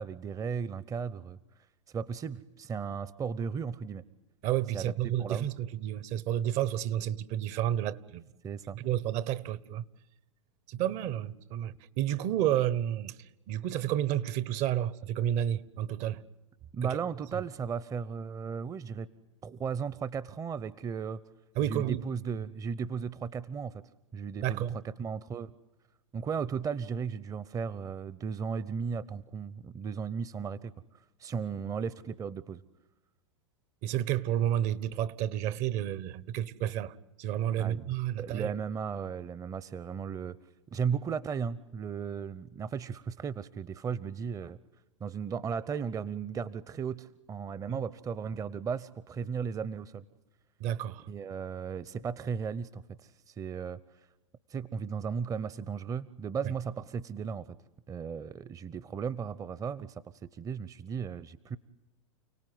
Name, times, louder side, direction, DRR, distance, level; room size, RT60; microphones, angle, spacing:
voice 1, 0.0-1.4 1.9-4.0 4.7-5.5 8.4-8.8 16.7-19.1 19.4-21.2 21.6-23.7 24.1-24.6 25.0-25.5 26.1-30.7 31.2-32.6 37.6-37.9 38.2-40.4 40.7-44.6 45.0-50.0 51.1-53.8 54.5-57.5 57.9-61.6, right 6 dB, 20° right, 0.8 m, -35 dB
voice 2, 4.4-8.2 8.7-9.8 10.7-13.1 13.5-16.2 16.8-17.0 17.3-17.4 21.6-22.0 24.4-24.8 33.8-38.5 47.7-47.8 50.6-51.1, right 11 dB, 45° right, 1.1 m, -31 dB
30.0 x 18.5 x 9.5 m
hypercardioid pair, 100°, 16 cm